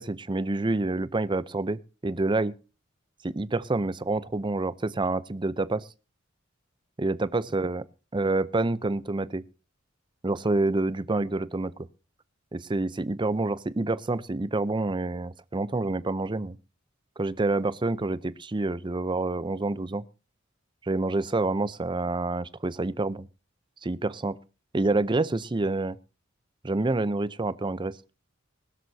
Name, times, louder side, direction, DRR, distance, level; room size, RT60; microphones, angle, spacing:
voice 1, 0.0-2.5 3.2-5.9 7.0-7.8 8.1-9.4 10.2-11.7 12.5-16.6 17.2-20.0 20.8-23.3 23.8-24.4 24.7-26.0 26.6-28.0, right 2 dB, 25° right, 0.6 m, -27 dB
21.0 x 12.5 x 2.7 m
head